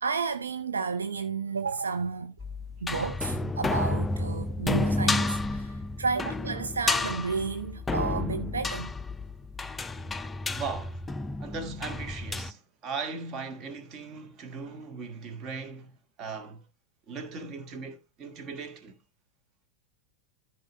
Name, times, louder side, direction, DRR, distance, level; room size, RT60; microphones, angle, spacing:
voice 1, 0.0-2.4 2.8-8.9, right 5 dB, 75° right, 0.6 m, -32 dB
sound 1, 2.4-12.5, left 2 dB, 10° left, 0.4 m, -31 dB
voice 2, 10.4-11.1 11.4-16.6 17.1-19.0, right 4 dB, 35° right, 1.5 m, -38 dB
13.5 x 4.9 x 3.1 m
figure-of-eight pair, 90°, 0 cm